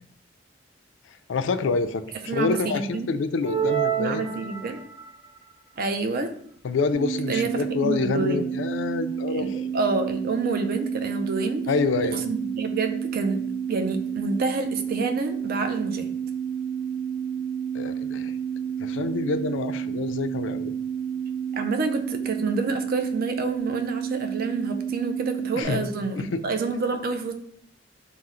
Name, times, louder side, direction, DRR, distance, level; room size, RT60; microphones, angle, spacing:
voice 1, 1.3-4.3 6.6-9.6 11.7-12.2 17.7-18.3 18.8-20.7 25.6-25.8 26.2-26.4, left 4 dB, 80° left, 10 dB, 0.4 m, -27 dB
voice 2, 2.3-3.1 4.0-4.8 5.8-6.3 7.3-8.5 9.3-11.6 12.0-16.1 21.5-27.3, right 3 dB, 50° right, 6 dB, 0.5 m, -28 dB
sound 1, 3.4-5.1, right 9 dB, 70° right, 1.3 m, -27 dB
sound 2, 6.9-25.6, right 8 dB, 5° left, 0.5 m, -30 dB
5.5 x 2.1 x 3.7 m, 0.64 s
head